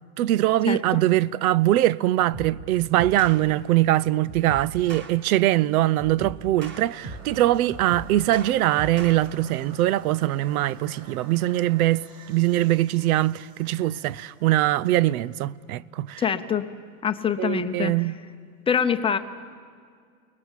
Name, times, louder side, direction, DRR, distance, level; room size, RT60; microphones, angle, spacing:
voice 1, 0.2-16.2 17.4-18.1, right 15 dB, 80° right, 0.7 m, -22 dB
sound 1, 2.3-2.6 3.0-3.4 4.2-5.1 6.0-7.3 7.7-9.2, right 3 dB, 25° right, 2.0 m, -38 dB
sound 2, 6.8-15.8, right 4 dB, 60° right, 5.9 m, -49 dB
voice 2, 16.2-16.7 17.0-17.9 18.7-19.2, left 7 dB, 15° left, 0.6 m, -24 dB
29.5 x 19.5 x 7.4 m
supercardioid pair, 155°, 43 cm